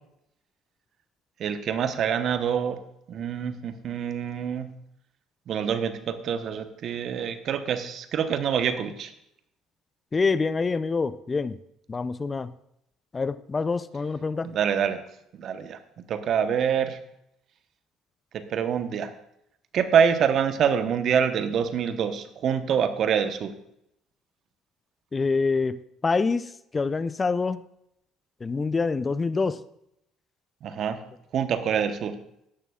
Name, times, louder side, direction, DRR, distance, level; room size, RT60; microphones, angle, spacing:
voice 1, 1.4-2.8 3.1-4.7 5.5-9.1 14.4-15.0 15.4-15.8 16.1-17.0 18.3-19.1 19.7-23.5 30.6-31.0 31.3-32.1, right 7 dB, 55° right, 9 dB, 1.0 m, -26 dB
voice 2, 10.1-11.6 11.9-12.5 13.1-14.5 25.1-27.6 28.4-29.6, left 4 dB, 30° left, 16 dB, 0.5 m, -26 dB
14.5 x 11.0 x 2.4 m, 0.77 s
hypercardioid pair, 60°, 0 cm